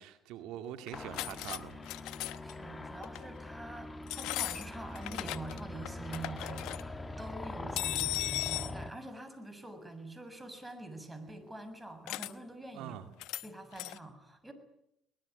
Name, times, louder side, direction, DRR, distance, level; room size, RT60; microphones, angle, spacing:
voice 1, 0.0-1.8 12.7-13.1, right 11 dB, 80° right, 9 dB, 2.2 m, -43 dB
sound 1, 0.9-1.6 1.8-2.5 3.0-3.3 4.1-5.6 5.9-6.8 7.8-8.7 12.1-12.3 13.2-13.5 13.7-14.0, left 17 dB, 80° left, 1.1 m, -37 dB
sound 2, 0.9-8.9, left 2 dB, 20° left, 1.7 m, -43 dB
voice 2, 2.4-13.0 13.4-14.5, right 2 dB, 10° right, 9 dB, 7.2 m, -45 dB
23.5 x 20.5 x 9.6 m, 0.77 s
supercardioid pair, 85°, 0 cm